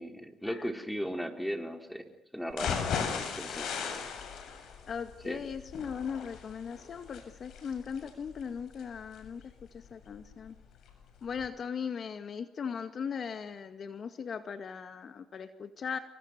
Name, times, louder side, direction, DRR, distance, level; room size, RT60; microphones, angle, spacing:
voice 1, 0.0-2.0 2.3-2.8 3.4-3.7 5.2-5.4, equal, ahead, 5 dB, 4.7 m, -36 dB
sound 1, 2.5-10.5 10.9-11.0 11.4-11.5, left 6 dB, 75° left, 7.3 m, -37 dB
voice 2, 4.9-9.4 9.7-10.5 11.2-16.0, left 6 dB, 55° left, 9 dB, 2.1 m, -38 dB
29.5 x 24.5 x 6.8 m, 0.67 s
cardioid pair, 90°, 0 cm